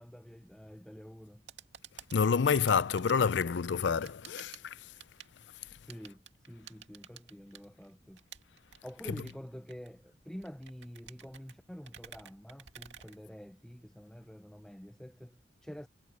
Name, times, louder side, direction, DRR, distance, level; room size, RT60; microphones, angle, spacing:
voice 1, 0.0-1.4 5.8-8.2 8.8-15.9, equal, 5° left, 0.5 m, -48 dB
sound 1, 1.4-13.8, right 9 dB, 75° right, 2.3 m, -54 dB
voice 2, 2.1-4.9, left 6 dB, 70° left, 0.5 m, -28 dB
head